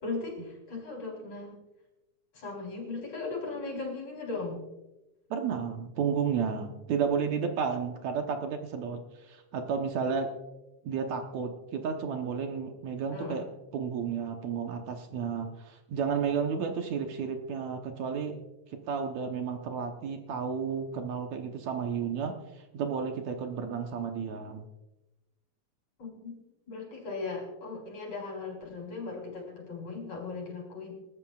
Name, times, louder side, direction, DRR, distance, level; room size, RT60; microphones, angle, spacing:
voice 1, 0.0-1.6 2.3-4.6 13.1-13.5 26.0-26.4 26.7-30.9, left 3 dB, 60° left, -2 dB, 5.3 m, -38 dB
voice 2, 5.3-10.3 10.8-13.5 13.7-18.4 18.7-24.7, right 6 dB, 75° right, 4 dB, 2.3 m, -32 dB
28.0 x 13.0 x 2.4 m, 1.0 s
omnidirectional pair, 3.4 m